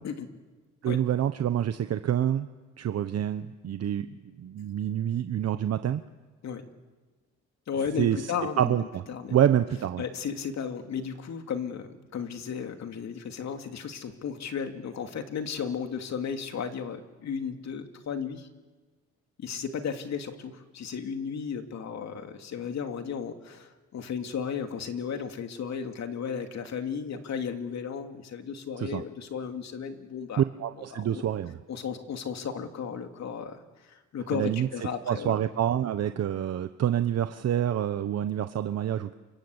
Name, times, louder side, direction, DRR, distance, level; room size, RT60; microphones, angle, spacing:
voice 1, 0.8-2.5 2.8-4.1 4.4-6.0 8.0-8.3 8.6-9.0 9.3-10.0 28.8-29.0 30.4-31.6 34.3-34.7 35.1-39.1, right 10 dB, 55° right, 10 dB, 1.0 m, -27 dB
voice 2, 7.7-9.4 10.0-18.5 19.4-30.4 30.9-31.2 31.7-33.6 33.9-35.4, left 7 dB, 60° left, 5 dB, 2.8 m, -34 dB
28.5 x 26.0 x 8.1 m, 1.3 s
cardioid pair, 90°, 30 cm